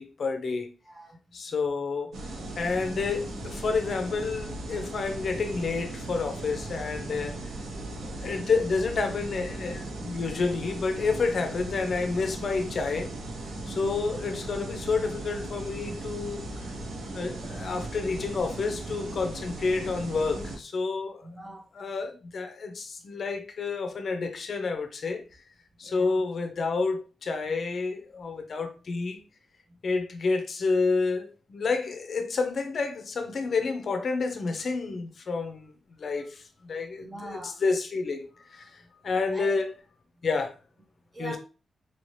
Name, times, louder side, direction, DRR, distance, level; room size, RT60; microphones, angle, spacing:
voice 1, 0.0-0.7 1.3-2.2 2.6-7.4 8.0-13.1 13.7-16.4 17.1-21.3 21.7-25.2 25.8-29.2 29.8-35.7 36.0-39.7 40.2-40.5 41.2-41.4, left 4 dB, 45° left, 0.6 m, -29 dB
voice 2, 0.8-1.2 13.6-14.0 21.2-21.7 25.8-26.2 37.0-37.6 39.3-39.5 41.1-41.4, right 1 dB, 15° right, 0.6 m, -42 dB
sound 1, 2.1-20.6, right 2 dB, 90° right, 1.0 m, -38 dB
4.3 x 2.8 x 3.1 m
wide cardioid pair, 175°, 0 cm